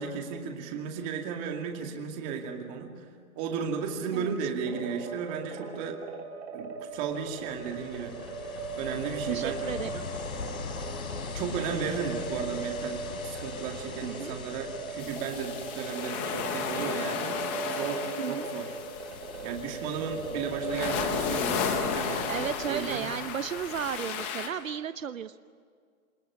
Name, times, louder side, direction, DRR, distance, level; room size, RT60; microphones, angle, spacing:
voice 1, 0.0-3.0 3.4-6.0 6.5-8.1 8.8-9.6 11.3-18.7 19.4-22.3 22.6-23.1, right 6 dB, 20° right, 3 dB, 2.3 m, -34 dB
sound 1, 4.6-23.1, right 4 dB, 50° right, 3.8 m, -39 dB
Ocean, 6.9-24.3, left 5 dB, 75° left, 3.2 m, -42 dB
voice 2, 9.3-10.4 14.0-14.3 18.2-18.5 22.3-25.4, right 8 dB, 65° right, 12 dB, 1.0 m, -34 dB
sound 2, 15.0-24.5, left 6 dB, 10° left, 0.8 m, -34 dB
28.0 x 22.5 x 9.6 m, 2.1 s
hypercardioid pair, 165°, 43 cm